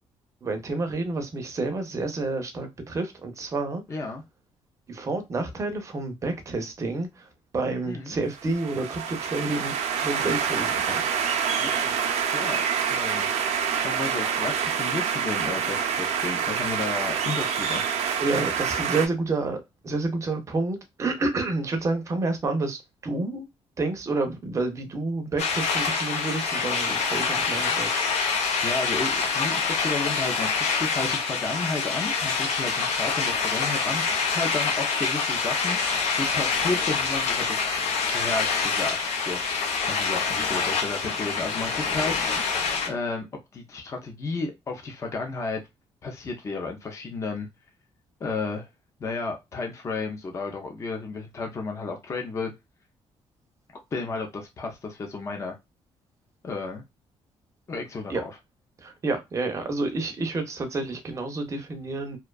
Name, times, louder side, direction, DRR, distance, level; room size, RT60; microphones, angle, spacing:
voice 1, 0.4-3.8 4.9-9.8 10.0-11.6 18.2-23.5 23.8-28.0 58.1-58.2 58.8-62.2, right 3 dB, 25° right, 0.5 m, -29 dB
voice 2, 3.9-4.2 7.8-8.1 11.6-11.9 12.3-12.6 12.9-13.3 13.8-17.8 28.6-37.7 38.1-43.3 43.5-45.6 46.0-47.5 48.2-48.7 49.0-52.5 53.9-55.6 56.4-56.8 57.7-58.4, left 3 dB, 25° left, 0.4 m, -33 dB
sound 1, 8.4-19.1, right 7 dB, 85° right, 0.5 m, -27 dB
sound 2, 25.4-42.9, left 5 dB, 75° left, 0.6 m, -26 dB
2.5 x 2.2 x 2.2 m
cardioid pair, 165°, 11 cm